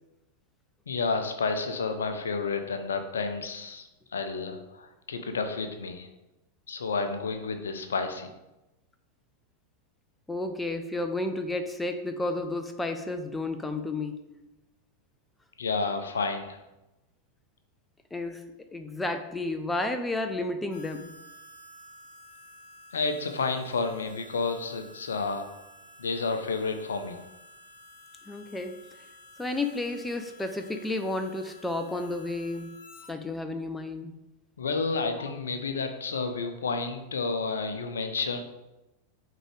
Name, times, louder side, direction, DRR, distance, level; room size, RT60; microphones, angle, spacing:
voice 1, 0.9-6.1 6.7-8.3 15.6-16.6 22.9-25.5 26.0-27.2 34.6-38.4, left 4 dB, 70° left, 7 dB, 0.6 m, -30 dB
voice 2, 10.3-14.4 18.1-18.4 18.7-21.1 28.3-28.8 29.4-32.8 33.1-34.1, left 2 dB, 10° left, 7 dB, 0.5 m, -32 dB
Harmonica, 20.7-33.1, left 1 dB, 45° left, 1.0 m, -52 dB
8.8 x 3.8 x 3.3 m, 0.98 s
figure-of-eight pair, 90°, 0 cm